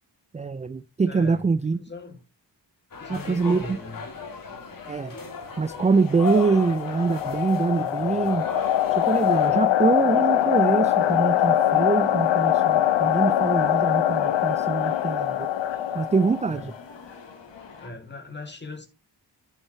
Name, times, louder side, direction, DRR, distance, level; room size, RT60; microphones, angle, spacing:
voice 1, 0.3-1.8 3.1-3.8 4.9-5.2 5.6-8.4 8.9-15.4 15.9-16.7, right 4 dB, 20° right, 0.3 m, -24 dB
voice 2, 1.1-2.2 2.9-4.0 16.5-16.7 17.8-18.9, left 2 dB, 25° left, 1.8 m, -39 dB
sound 1, 2.9-9.5, left 4 dB, 50° left, 1.8 m, -36 dB
sound 2, 3.1-17.9, left 5 dB, 75° left, 1.8 m, -47 dB
sound 3, 5.8-16.7, left 12 dB, 90° left, 0.8 m, -23 dB
11.0 x 6.6 x 2.8 m
cardioid pair, 85°, 44 cm